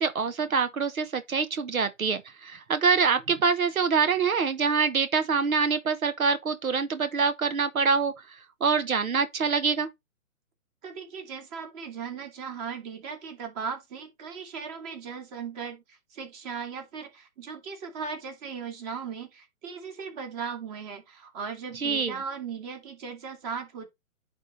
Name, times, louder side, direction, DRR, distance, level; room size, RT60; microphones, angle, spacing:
voice 1, 0.0-8.1 8.6-9.9 21.8-22.1, right 5 dB, 90° right, 1.0 m, -25 dB
voice 2, 10.8-23.9, right 6 dB, 30° right, 2.4 m, -37 dB
10.0 x 3.7 x 4.0 m
hypercardioid pair, 145°, 41 cm